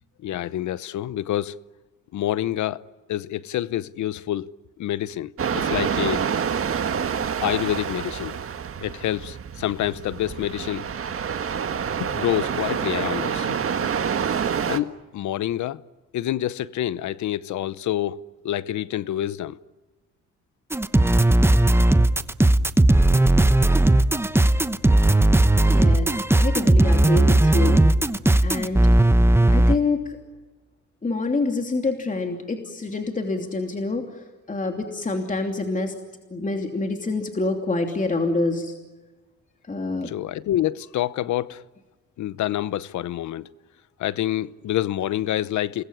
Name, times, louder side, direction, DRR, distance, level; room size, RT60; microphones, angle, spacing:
voice 1, 0.2-1.6 2.1-2.8 3.1-4.5 4.8-6.2 7.4-8.4 8.8-10.9 12.0-13.6 14.7-15.8 16.1-18.2 18.4-19.6 40.0-41.6 42.2-43.5 44.0-45.8, left 12 dB, 70° left, 0.9 m, -27 dB
sound 1, 5.4-14.8, right 7 dB, 45° right, 1.7 m, -27 dB
sound 2, 20.7-29.8, right 1 dB, 10° right, 0.9 m, -17 dB
voice 2, 25.7-27.8 28.4-28.9 29.5-30.2 31.0-35.9 36.3-38.7 39.7-40.1, left 3 dB, 25° left, 2.9 m, -27 dB
28.5 x 21.0 x 9.8 m
cardioid pair, 90°, 30 cm